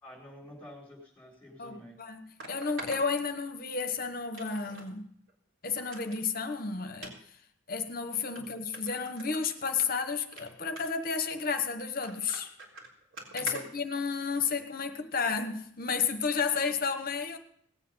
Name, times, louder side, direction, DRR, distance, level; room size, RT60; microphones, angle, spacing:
voice 1, 0.0-2.0 8.3-8.6 13.4-13.7, left 1 dB, 10° left, 4.9 m, -49 dB
sound 1, 1.3-1.4 2.4-3.8 4.3-4.9 5.3-5.4 5.8-6.2 6.9-7.1 7.9-8.0 8.4-8.5 8.7-9.9 10.2-10.4 10.8-11.1 11.8-14.5 15.3-15.5 16.0-16.1, right 2 dB, 85° right, 3.8 m, -45 dB
voice 2, 1.6-2.2 2.5-5.1 5.6-7.1 7.7-12.5 13.3-17.4, left 5 dB, 45° left, 1.2 m, -32 dB
18.5 x 8.5 x 5.6 m
head